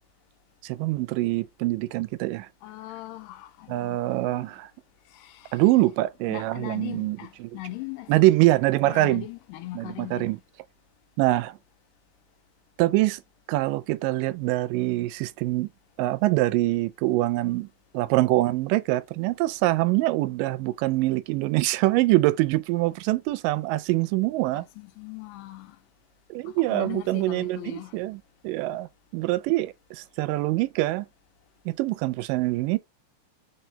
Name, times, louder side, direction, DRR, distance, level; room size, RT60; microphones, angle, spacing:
voice 1, 0.6-2.5 3.7-4.7 5.5-7.5 8.1-9.2 9.8-10.4 11.2-11.6 12.8-13.2 13.5-15.7 16.0-17.7 17.9-24.7 26.3-31.1 31.7-32.8, right 18 dB, 90° right, 2.2 m, -24 dB
voice 2, 2.6-4.5 5.1-5.6 6.3-8.2 8.8-10.4 24.5-25.8 26.5-28.0, left 16 dB, 90° left, 2.2 m, -40 dB
4.4 x 4.0 x 2.8 m
omnidirectional pair, 3.8 m